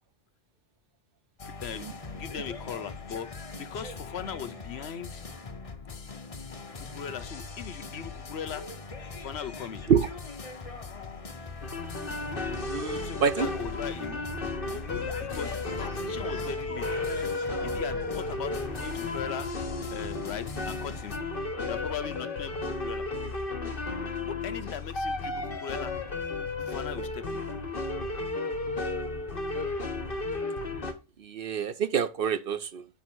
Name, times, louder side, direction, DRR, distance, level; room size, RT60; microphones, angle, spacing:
sound 1, 1.4-21.2, left 4 dB, 35° left, 0.8 m, -42 dB
voice 1, 1.5-1.9 2.1-5.2 6.8-8.7 9.1-9.8 13.0-14.3 14.7-16.9 17.6-19.5 19.9-22.6 22.8-23.1 24.2-26.0 26.6-27.4, left 8 dB, 70° left, 1.0 m, -39 dB
sound 2, 11.6-30.9, left 3 dB, 55° left, 1.4 m, -33 dB
voice 2, 12.5-13.5 31.2-32.9, right 7 dB, 60° right, 0.8 m, -27 dB
9.2 x 3.6 x 6.1 m
omnidirectional pair, 1.2 m